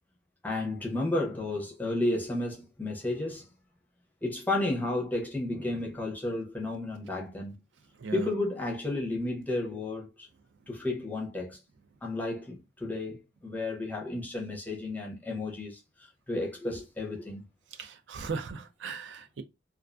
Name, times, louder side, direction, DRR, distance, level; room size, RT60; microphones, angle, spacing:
voice 1, 0.4-3.5 4.2-7.6 8.1-10.3 10.7-11.6 12.0-17.5, left 2 dB, 10° left, 0.5 m, -32 dB
voice 2, 8.0-8.3 17.7-19.4, right 4 dB, 70° right, 0.4 m, -37 dB
2.3 x 2.3 x 2.3 m
head